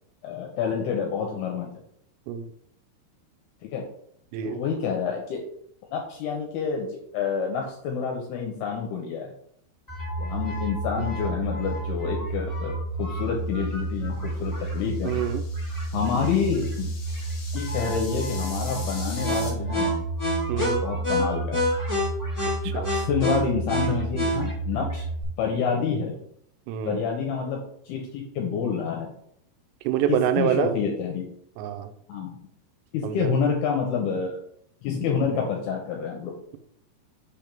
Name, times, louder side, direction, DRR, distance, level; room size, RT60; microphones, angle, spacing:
voice 1, 0.2-1.7 3.6-3.8 4.4-5.4 5.9-9.3 10.2-15.2 15.9-16.9 17.5-20.0 20.8-21.6 22.6-25.0 25.4-26.2 26.9-27.6 27.9-29.1 30.1-31.2 32.1-32.4 32.9-34.4 34.8-36.3, left 6 dB, 75° left, 1 dB, 2.7 m, -28 dB
sound 1, 9.9-25.2, right 1 dB, 15° left, 0.6 m, -29 dB
sound 2, 14.4-19.5, left 3 dB, 60° left, 1.6 m, -43 dB
voice 2, 15.0-15.4 20.5-20.9 22.6-22.9 26.7-27.0 29.8-30.7 31.6-31.9 33.0-33.3, right 9 dB, 85° right, 9 dB, 2.9 m, -26 dB
6.4 x 3.5 x 5.8 m, 0.69 s
omnidirectional pair, 4.9 m